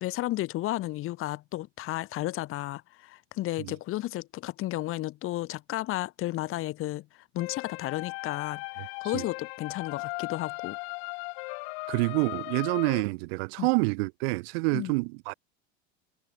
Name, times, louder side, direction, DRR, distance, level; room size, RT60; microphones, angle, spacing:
voice 1, 0.0-7.1 7.3-10.8 13.6-13.7 14.7-14.9, left 16 dB, 40° left, 1.1 m, -33 dB
sound 1, 7.4-13.0, left 30 dB, 65° left, 1.4 m, -37 dB
voice 2, 11.9-15.3, right 28 dB, 70° right, 0.4 m, -27 dB
supercardioid pair, 125°, 32 cm